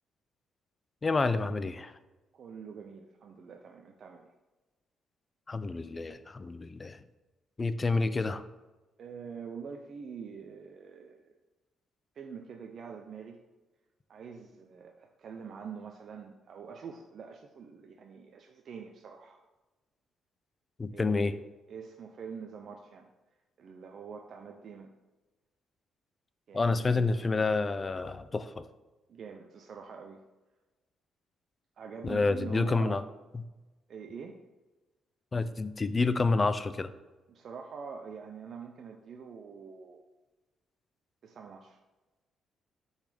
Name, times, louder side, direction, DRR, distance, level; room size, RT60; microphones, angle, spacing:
voice 1, 1.0-1.9 5.5-7.0 7.6-8.4 20.8-21.3 26.5-28.6 32.0-33.0 33.3-33.4 35.3-36.9, left 3 dB, 25° left, 13 dB, 0.3 m, -29 dB
voice 2, 2.3-4.3 9.0-11.3 12.1-13.4 14.1-19.4 20.9-21.4 21.7-23.1 23.6-24.9 26.5-27.5 29.1-30.2 31.8-33.0 33.9-34.4 37.3-40.0 41.2-41.8, right 6 dB, 55° right, 3 dB, 0.5 m, -45 dB
6.1 x 4.0 x 5.0 m, 1.1 s
cardioid pair, 120°, 0 cm